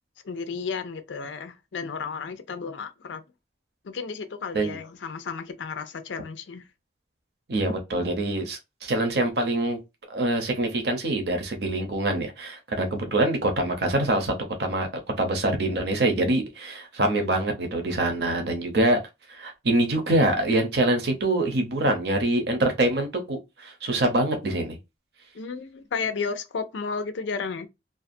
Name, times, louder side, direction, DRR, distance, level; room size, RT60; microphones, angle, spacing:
voice 1, 0.2-3.2 3.8-6.7 17.1-17.3 25.3-27.7, left 5 dB, 80° left, 0.5 m, -33 dB
voice 2, 7.5-9.8 10.1-14.3 14.6-14.9 15.2-19.0 19.3-24.8, right 1 dB, 60° right, 0.7 m, -25 dB
2.5 x 2.3 x 2.5 m
head